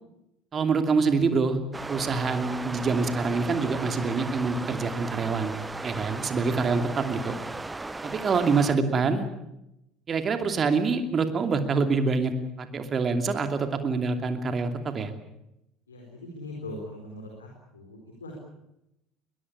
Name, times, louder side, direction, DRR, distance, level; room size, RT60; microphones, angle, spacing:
voice 1, 0.5-1.6 1.9-5.5 5.8-7.4 8.0-9.3 10.1-12.3 12.6-15.1, right 4 dB, 35° right, 7 dB, 2.7 m, -26 dB
sound 1, 1.7-8.8, right 2 dB, 15° right, 1.1 m, -36 dB
voice 2, 15.9-18.3, left 1 dB, 80° left, 1 dB, 4.3 m, -41 dB
22.0 x 21.5 x 8.5 m, 0.86 s
figure-of-eight pair, 65°, 0 cm